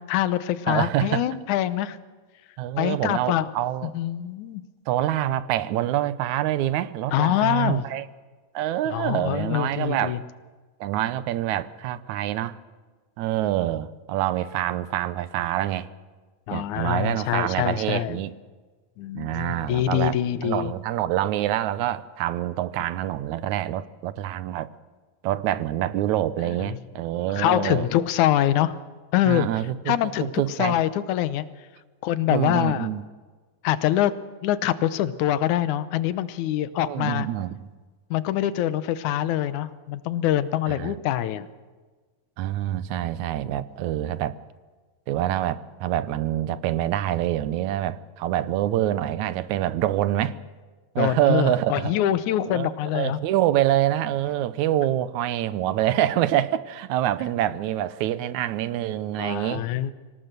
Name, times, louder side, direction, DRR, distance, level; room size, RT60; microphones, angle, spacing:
voice 1, 0.1-2.0 2.8-3.5 3.8-4.6 7.1-7.9 8.9-10.2 16.5-18.2 19.0-20.7 26.4-26.8 27.3-28.8 29.1-29.5 29.9-31.5 32.0-32.9 33.6-34.1 34.4-37.3 38.1-41.5 51.0-53.2 59.2-59.9, left 12 dB, 85° left, 2.3 m, -24 dB
voice 2, 0.7-1.3 2.6-3.9 4.9-8.1 8.5-10.2 10.8-12.6 13.2-15.9 16.5-18.3 19.2-20.2 20.4-24.7 25.2-27.9 29.3-30.8 32.3-33.0 36.8-37.6 40.8-41.0 42.4-44.4 45.1-50.4 51.0-51.9 52.5-52.7 52.9-59.6, right 13 dB, 80° right, 2.2 m, -26 dB
25.0 x 18.5 x 6.7 m
omnidirectional pair, 3.3 m